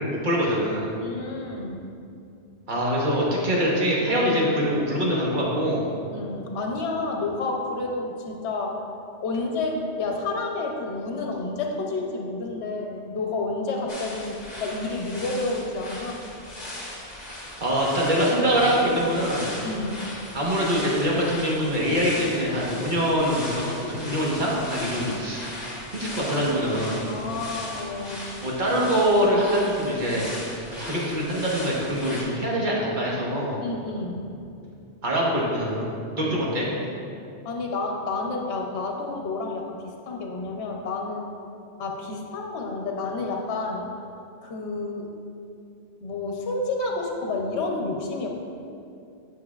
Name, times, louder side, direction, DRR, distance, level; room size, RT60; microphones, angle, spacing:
voice 1, 0.1-0.9 2.7-5.9 17.6-19.5 20.3-25.5 25.9-27.0 28.4-30.2 30.7-33.6 35.0-36.7, equal, 45° right, -5 dB, 1.3 m, -24 dB
voice 2, 1.0-1.9 6.1-8.8 9.2-16.2 19.6-20.1 27.1-28.3 33.6-34.3 36.2-36.3 37.4-41.3 41.8-43.9 44.4-45.1 46.0-48.3, left 3 dB, 70° left, 1 dB, 1.1 m, -30 dB
sound 1, 13.9-32.2, left 1 dB, 35° left, 1.3 m, -38 dB
9.2 x 5.7 x 2.4 m, 2.5 s
omnidirectional pair, 1.2 m